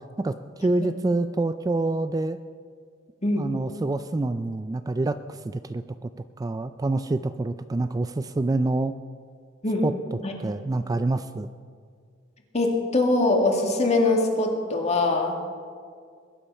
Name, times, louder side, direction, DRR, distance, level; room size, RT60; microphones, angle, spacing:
voice 1, 0.2-2.4 3.4-6.1 6.4-8.9 9.8-11.5, right 2 dB, 20° right, 11 dB, 0.3 m, -27 dB
voice 2, 12.5-15.4, left 2 dB, 35° left, 2 dB, 2.1 m, -23 dB
21.5 x 10.0 x 5.5 m, 2.1 s
head